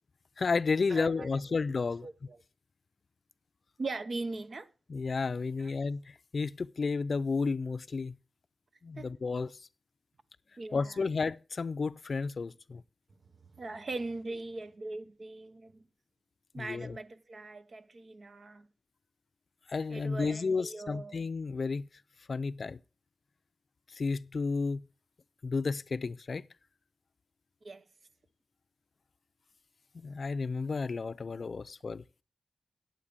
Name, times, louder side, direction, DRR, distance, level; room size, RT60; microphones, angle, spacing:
voice 1, 0.4-2.1 4.9-8.2 8.8-9.5 10.7-12.8 16.6-17.0 19.7-21.9 22.3-22.8 23.9-24.8 25.4-26.4 29.9-32.0, left 4 dB, 55° left, 0.4 m, -32 dB
voice 2, 0.9-1.4 2.0-2.4 3.8-4.7 5.6-5.7 9.0-9.2 10.6-11.0 13.5-15.8 16.5-18.7 19.9-21.3 27.6-27.9, right 3 dB, 55° right, 0.8 m, -40 dB
9.0 x 8.6 x 5.1 m
wide cardioid pair, 75°, 0 cm